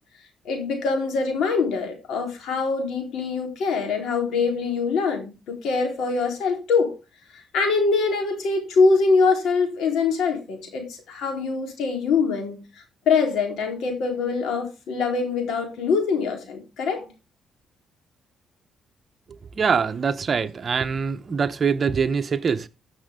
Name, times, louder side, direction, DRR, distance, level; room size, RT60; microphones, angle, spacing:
voice 1, 0.5-7.0 7.5-12.6 13.1-17.1, left 4 dB, 75° left, 3.9 m, -23 dB
voice 2, 19.6-22.7, right 6 dB, 40° right, 1.0 m, -23 dB
14.5 x 6.5 x 3.8 m
cardioid pair, 90°, 0 cm